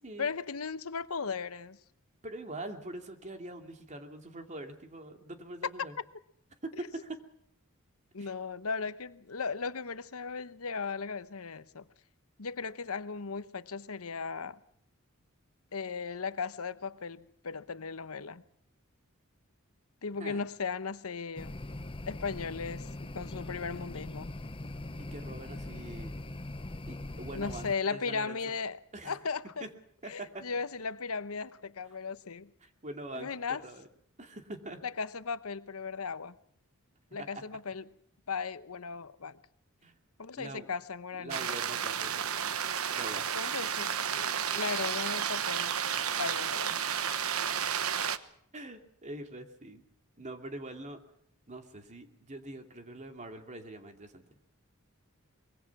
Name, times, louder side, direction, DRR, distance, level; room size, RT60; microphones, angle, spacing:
voice 1, 0.2-1.8 6.7-6.9 8.1-11.9 12.4-14.6 15.7-18.4 20.0-21.5 22.1-24.3 27.3-28.8 29.0-29.6 30.1-32.5 33.1-33.6 34.8-36.3 37.1-37.8 38.3-39.4 40.2-41.5 43.3-45.8 46.2-46.8, left 5 dB, 85° left, 1.0 m, -37 dB
voice 2, 2.2-5.9 6.6-7.2 8.2-8.3 20.2-20.4 25.0-26.3 26.9-28.5 28.9-29.2 30.0-30.5 32.6-33.3 33.6-33.9 34.2-34.8 37.3-37.4 39.8-39.9 40.4-40.7 41.1-42.4 42.9-43.2 48.5-49.8 50.2-51.0 51.5-54.2, right 1 dB, 35° right, 2.7 m, -43 dB
sound 1, 21.4-27.7, left 1 dB, 25° left, 0.8 m, -41 dB
sound 2, 41.3-48.2, right 8 dB, 85° right, 1.2 m, -32 dB
24.5 x 22.5 x 6.0 m
head